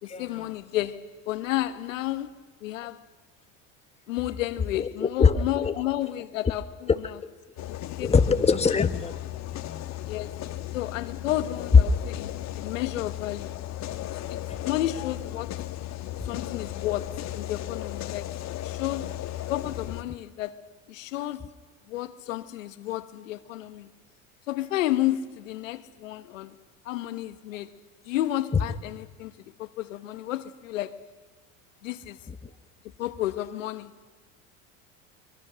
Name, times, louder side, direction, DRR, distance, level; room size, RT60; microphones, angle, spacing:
voice 1, 0.0-2.3 2.6-3.0 4.1-7.2 7.7-8.2 10.1-10.5 10.7-13.6 14.3-15.6 16.2-18.3 18.6-19.2 19.5-21.5 21.9-23.9 24.5-26.6 26.8-27.7 28.0-31.0 31.8-32.2 33.0-33.9, left 14 dB, 85° left, 1.3 m, -32 dB
voice 2, 4.8-5.7 8.0-9.1 9.7-9.8 14.5-14.6, left 5 dB, 15° left, 1.3 m, -23 dB
sound 1, 7.6-20.0, left 14 dB, 45° left, 1.4 m, -36 dB
24.0 x 23.5 x 6.3 m
hypercardioid pair, 90°, 38 cm